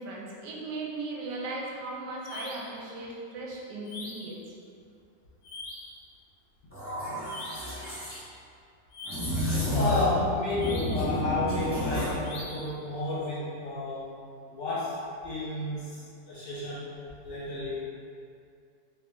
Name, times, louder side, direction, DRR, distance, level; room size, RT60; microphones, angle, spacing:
voice 1, 0.0-4.4, right 2 dB, 80° right, -3 dB, 1.2 m, -37 dB
sound 1, 2.2-2.8 3.8-4.4 5.4-6.0 7.3-7.8 8.9-9.5 10.6-11.1 12.2-12.8, left 2 dB, 70° left, 1.0 m, -43 dB
sound 2, 6.7-8.2 9.1-10.2 10.5-12.2, equal, 10° left, 0.8 m, -30 dB
voice 2, 9.7-14.1 14.4-15.0 15.2-16.9 17.2-17.8, left 2 dB, 50° left, -10 dB, 1.6 m, -31 dB
3.8 x 3.1 x 3.7 m, 2.4 s
omnidirectional pair, 1.9 m